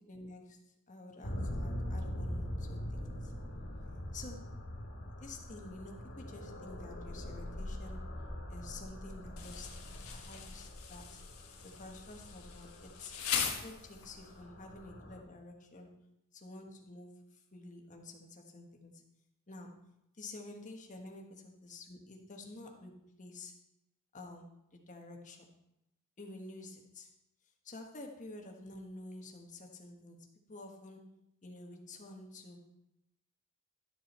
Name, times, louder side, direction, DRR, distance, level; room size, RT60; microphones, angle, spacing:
voice 1, 0.0-3.3 4.1-4.5 5.2-8.1 8.5-11.2 11.6-13.1 13.4-16.0 16.3-19.0 19.5-19.9 20.2-23.6 24.1-25.5 26.2-27.1 27.6-31.1 31.4-32.7, left 2 dB, 35° left, 2 dB, 1.4 m, -50 dB
sound 1, 1.2-15.2, equal, 65° left, 2.1 m, -43 dB
Insect, 9.4-14.3, left 7 dB, 90° left, 1.5 m, -40 dB
12.5 x 6.9 x 4.3 m, 0.85 s
head